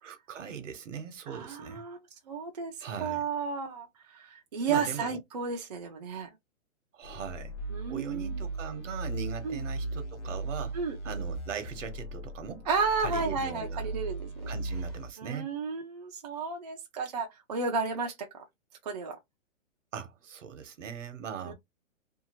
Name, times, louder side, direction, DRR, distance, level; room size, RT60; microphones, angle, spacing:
voice 1, 0.0-1.8 2.8-3.2 4.7-5.2 6.9-7.5 7.9-10.8 11.0-12.7 13.0-13.8 14.5-15.5 19.9-21.5, right 7 dB, 65° right, 1.0 m, -40 dB
voice 2, 1.3-2.0 2.3-2.7 3.0-6.3 7.7-8.4 9.4-9.6 10.7-11.2 12.7-14.5 15.2-18.4 18.8-19.2 21.4-21.5, right 5 dB, 35° right, 0.4 m, -33 dB
sound 1, 7.0-15.1, right 2 dB, 60° left, 0.9 m, -37 dB
2.7 x 2.3 x 2.8 m
hypercardioid pair, 160°, 40 cm